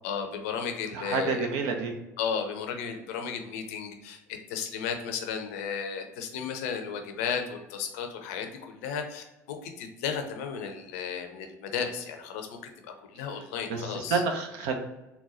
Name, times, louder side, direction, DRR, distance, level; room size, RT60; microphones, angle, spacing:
voice 1, 0.0-1.5 2.2-4.2 4.5-12.6 12.8-14.2, left 6 dB, 70° left, 5 dB, 0.6 m, -34 dB
voice 2, 0.9-1.9 13.3-13.4 13.7-14.7, right 4 dB, 65° right, 4 dB, 0.7 m, -29 dB
4.0 x 2.2 x 4.0 m, 1.0 s
figure-of-eight pair, 65°, 8 cm